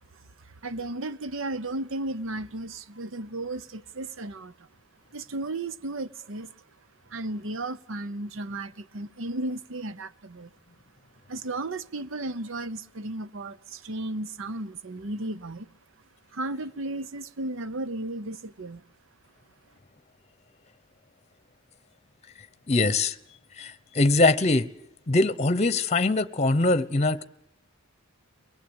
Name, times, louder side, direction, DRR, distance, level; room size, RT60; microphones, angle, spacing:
voice 1, 0.1-4.7 5.1-6.5 7.1-10.5 11.3-15.7 16.3-18.8, right 2 dB, 65° right, 0.9 m, -34 dB
voice 2, 22.7-23.2 23.6-24.7 25.1-27.2, left 2 dB, 30° left, 0.9 m, -22 dB
24.0 x 19.5 x 8.9 m
head